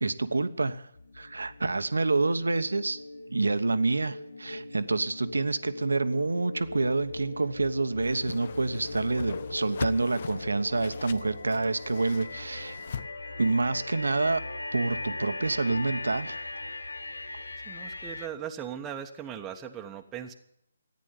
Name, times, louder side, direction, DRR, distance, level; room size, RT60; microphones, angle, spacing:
voice 1, 0.0-0.9 1.1-3.0 3.3-12.8 13.4-14.4 14.7-16.4, right 3 dB, 80° right, 11 dB, 1.2 m, -27 dB
sound 1, 1.0-18.3, left 2 dB, 80° left, 1.1 m, -40 dB
Whoosh swoosh swish, 8.0-13.0, left 6 dB, 50° left, 0.9 m, -41 dB
voice 2, 17.7-20.3, right 9 dB, 15° right, 2 dB, 1.2 m, -38 dB
14.5 x 9.9 x 9.3 m, 0.72 s
figure-of-eight pair, 145°, 0 cm